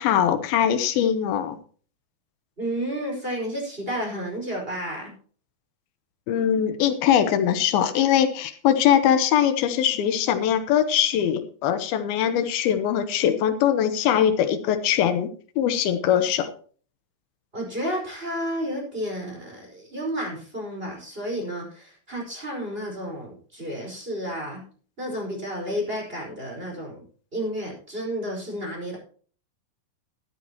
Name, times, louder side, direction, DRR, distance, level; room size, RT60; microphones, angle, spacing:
voice 1, 0.0-1.6 6.3-15.3 15.6-16.5, left 9 dB, 90° left, 10 dB, 2.9 m, -22 dB
voice 2, 2.6-5.1 17.5-24.6 25.0-27.0 27.3-29.0, equal, 15° right, -1 dB, 5.2 m, -31 dB
13.5 x 13.0 x 3.0 m, 0.43 s
omnidirectional pair, 4.2 m